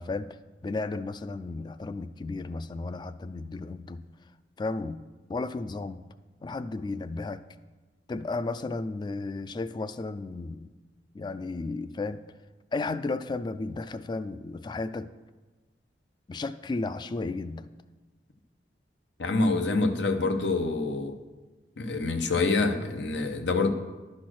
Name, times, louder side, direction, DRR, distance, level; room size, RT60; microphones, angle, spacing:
voice 1, 0.0-4.0 4.6-5.0 5.3-6.0 6.4-7.4 8.1-10.7 11.1-12.2 12.7-15.1 16.3-17.7, left 3 dB, 25° left, 13 dB, 0.3 m, -33 dB
voice 2, 19.2-21.1 21.8-23.7, left 3 dB, 90° left, 6 dB, 0.8 m, -26 dB
11.0 x 4.3 x 6.2 m, 1.2 s
head